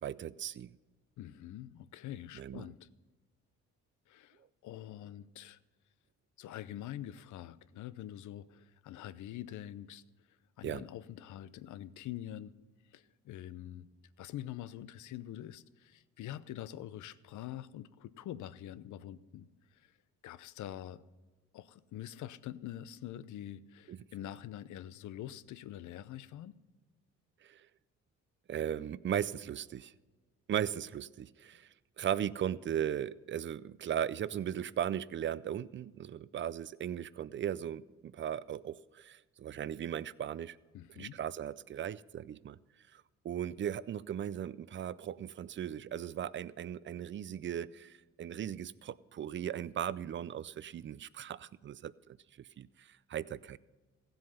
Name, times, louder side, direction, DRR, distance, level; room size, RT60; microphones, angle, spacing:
voice 1, 0.0-0.7 2.3-2.7 10.6-10.8 23.9-24.0 27.4-27.7 28.5-29.9 30.5-40.6 40.9-42.6 42.9-53.6, right 10 dB, 40° right, 0.4 m, -37 dB
voice 2, 1.2-2.9 4.1-5.6 6.4-10.0 10.6-12.5 12.9-13.9 14.2-19.9 20.2-21.0 21.5-26.5 40.7-41.2, left 12 dB, 75° left, 0.6 m, -45 dB
15.5 x 7.8 x 5.6 m
cardioid pair, 90°, 30 cm